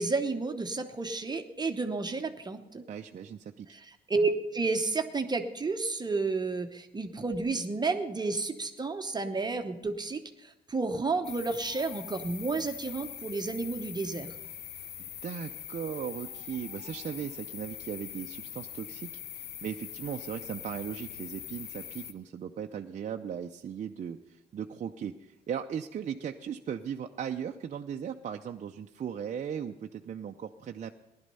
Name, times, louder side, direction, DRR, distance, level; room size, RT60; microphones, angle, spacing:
voice 1, 0.0-2.8 3.7-14.3, right 3 dB, 25° right, 6 dB, 0.9 m, -31 dB
voice 2, 2.9-3.7 15.0-30.9, right 8 dB, 45° right, 4 dB, 0.6 m, -38 dB
sound 1, 11.2-22.1, left 10 dB, 75° left, 0.8 m, -43 dB
16.0 x 11.5 x 5.5 m, 0.93 s
cardioid pair, 85°, 17 cm